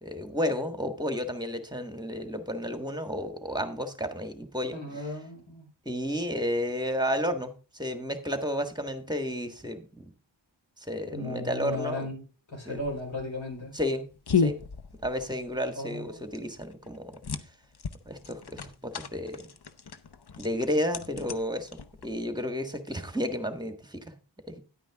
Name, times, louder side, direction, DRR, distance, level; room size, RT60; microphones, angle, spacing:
voice 1, 0.0-5.0 5.8-10.1 10.8-12.1 12.6-12.8 13.7-14.1 14.4-14.6 15.0-17.2 18.0-19.5 20.4-21.7 22.0-24.1 24.5-24.6, equal, 10° right, 7 dB, 1.6 m, -32 dB
voice 2, 4.7-5.7 11.1-13.8 15.7-16.2, left 2 dB, 75° left, 0 dB, 4.6 m, -36 dB
sound 1, 12.8-22.3, left 6 dB, 55° left, 0.8 m, -34 dB
10.5 x 9.1 x 3.6 m, 0.34 s
wide cardioid pair, 50°, 47 cm